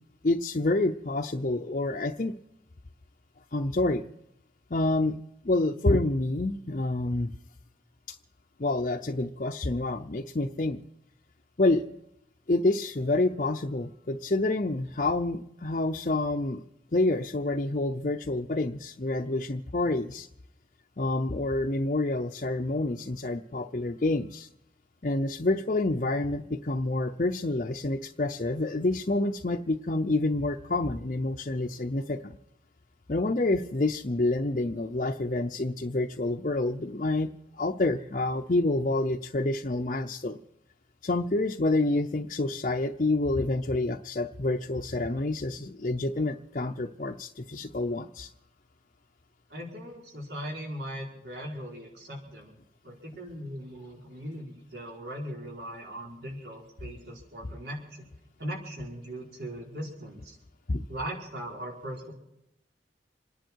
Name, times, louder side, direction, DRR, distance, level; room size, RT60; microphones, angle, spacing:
voice 1, 0.2-2.3 3.5-4.0 4.7-5.2 5.4-7.3 8.1-8.2 8.6-10.8 11.6-11.8 12.5-16.6 16.9-20.3 21.0-24.5 25.0-32.4 33.1-40.4 41.0-48.3 60.7-60.8, left 2 dB, 45° left, 2 dB, 0.7 m, -28 dB
voice 2, 49.5-52.5 52.8-58.0 58.4-60.4 60.9-62.1, equal, 70° right, -1 dB, 4.7 m, -39 dB
27.5 x 10.5 x 4.6 m, 0.81 s
head